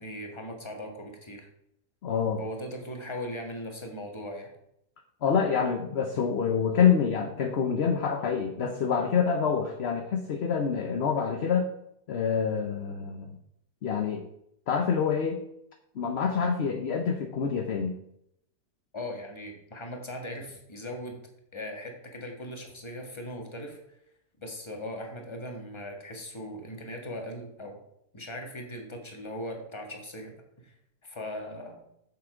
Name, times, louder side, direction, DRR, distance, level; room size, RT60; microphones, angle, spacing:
voice 1, 0.0-1.5 2.4-4.5 18.9-21.2 21.5-23.8 24.4-27.8 28.1-30.7 31.0-31.8, left 1 dB, 20° left, 2 dB, 1.4 m, -39 dB
voice 2, 2.0-2.4 5.2-11.7 12.1-13.3 13.8-14.2 14.7-15.4 15.9-18.0, left 6 dB, 55° left, 4 dB, 0.8 m, -26 dB
6.9 x 6.9 x 4.8 m, 0.77 s
omnidirectional pair, 1.8 m